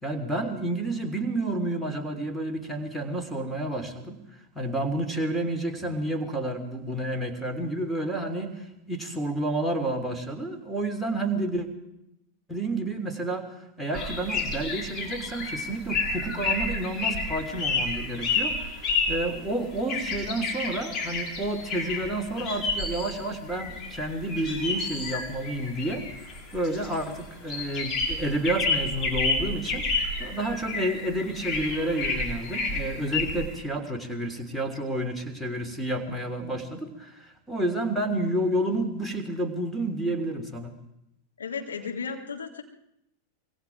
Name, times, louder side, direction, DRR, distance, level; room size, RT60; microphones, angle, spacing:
voice 1, 0.0-4.2 4.5-11.7 12.5-18.7 19.1-26.1 26.5-40.7, right 1 dB, ahead, 5 dB, 3.4 m, -30 dB
sound 1, 13.9-33.5, left 3 dB, 30° left, 6.4 m, -30 dB
voice 2, 41.4-42.6, left 5 dB, 70° left, 1 dB, 3.5 m, -34 dB
25.5 x 23.5 x 4.8 m, 0.83 s
figure-of-eight pair, 90°, 0 cm